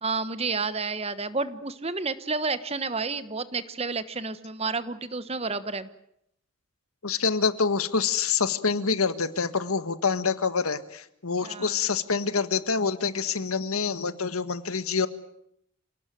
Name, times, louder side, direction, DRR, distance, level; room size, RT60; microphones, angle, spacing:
voice 1, 0.0-5.9 11.4-11.8, right 4 dB, 30° right, 13 dB, 1.2 m, -30 dB
voice 2, 7.0-15.1, left 5 dB, 90° left, 12 dB, 1.7 m, -26 dB
28.0 x 18.5 x 9.2 m, 0.75 s
head